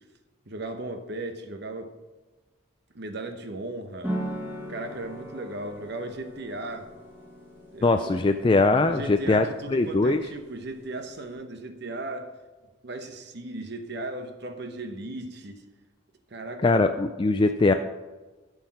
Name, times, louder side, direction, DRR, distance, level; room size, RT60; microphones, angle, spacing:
voice 1, 0.5-1.9 2.9-4.1 4.7-6.9 7.7-8.2 8.8-12.3 12.8-15.6 16.3-16.6, right 2 dB, 50° right, 7 dB, 0.9 m, -36 dB
sound 1, 4.0-11.3, right 1 dB, 10° right, 2.1 m, -39 dB
voice 2, 7.8-10.2 16.6-17.7, left 3 dB, 25° left, 6 dB, 0.3 m, -21 dB
10.0 x 6.3 x 5.7 m, 1.2 s
head